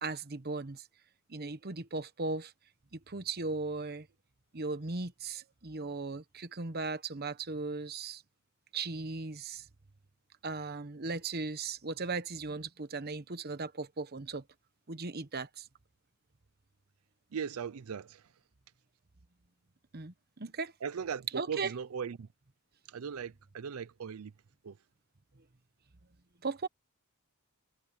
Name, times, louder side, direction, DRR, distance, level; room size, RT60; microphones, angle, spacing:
voice 1, 0.0-0.9 1.3-2.5 2.9-4.1 4.5-8.2 8.7-9.7 10.4-14.4 14.9-15.7 19.9-20.7 21.3-21.7 26.4-26.7, right 3 dB, 45° right, 1.1 m, -37 dB
voice 2, 17.3-18.3 20.8-22.3 22.9-24.3 24.6-24.8, right 7 dB, 85° right, 0.5 m, -38 dB
head